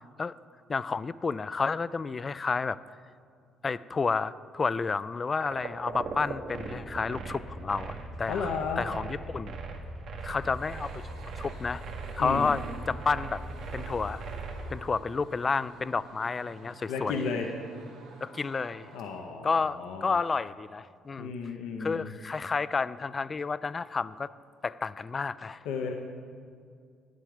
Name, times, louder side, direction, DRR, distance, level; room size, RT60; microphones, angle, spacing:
voice 1, 0.7-2.8 3.6-8.5 8.8-9.6 10.2-11.0 11.4-11.8 12.1-13.4 13.7-14.2 14.7-17.2 18.2-18.9 19.4-21.3 21.8-24.3 24.6-25.6, left 4 dB, 35° left, 17 dB, 0.3 m, -30 dB
sound 1, 5.3-14.7, right 3 dB, 65° right, 1.4 m, -39 dB
voice 2, 8.3-8.9 12.2-12.5 16.9-17.5 18.9-20.1 21.2-22.1 25.6-25.9, left 5 dB, 75° left, 3 dB, 0.7 m, -33 dB
sound 2, 10.2-19.1, right 3 dB, 90° right, 2.0 m, -50 dB
10.0 x 9.4 x 5.0 m, 2.2 s
hypercardioid pair, 60°, 0 cm